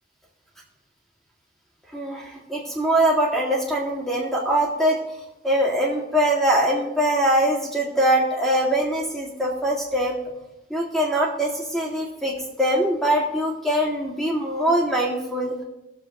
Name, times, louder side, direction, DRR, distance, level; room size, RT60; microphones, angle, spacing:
voice 1, 1.9-5.0 5.4-10.1 10.7-15.6, right 1 dB, ahead, -3 dB, 2.2 m, -22 dB
21.0 x 7.3 x 3.1 m, 0.96 s
head